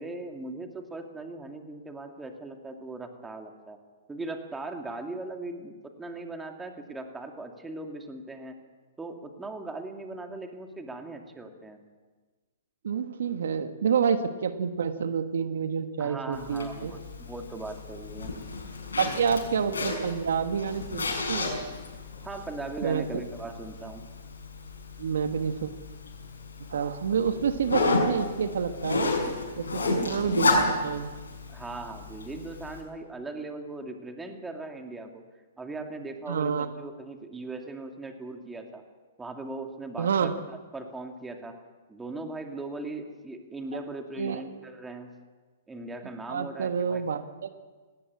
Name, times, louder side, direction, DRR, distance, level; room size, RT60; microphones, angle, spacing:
voice 1, 0.0-3.8 4.1-8.6 9.0-11.8 16.0-18.4 22.2-24.1 31.5-35.2 35.6-38.8 39.2-41.6 41.9-45.1 45.7-47.0, right 2 dB, 10° right, 4 dB, 2.4 m, -39 dB
voice 2, 12.8-16.9 19.0-21.5 22.8-23.0 25.0-25.7 26.7-29.1 29.6-31.1 36.3-36.7 40.0-40.3 44.2-44.4 46.3-47.5, right 7 dB, 75° right, 9 dB, 1.3 m, -28 dB
Zipper (clothing), 16.3-32.8, left 3 dB, 85° left, 6.2 m, -32 dB
19.5 x 17.0 x 8.5 m, 1.3 s
hypercardioid pair, 130°, 0 cm